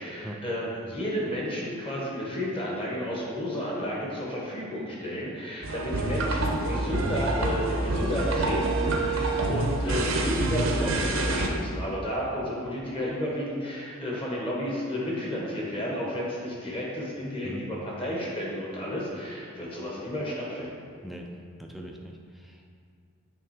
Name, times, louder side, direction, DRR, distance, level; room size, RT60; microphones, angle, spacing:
voice 1, 0.0-20.7, equal, 25° left, -4 dB, 1.3 m, -32 dB
sound 1, 5.6-11.5, right 2 dB, 70° right, 0.7 m, -27 dB
voice 2, 21.6-22.7, equal, ahead, 0 dB, 0.4 m, -41 dB
7.0 x 3.6 x 4.9 m, 2.3 s
head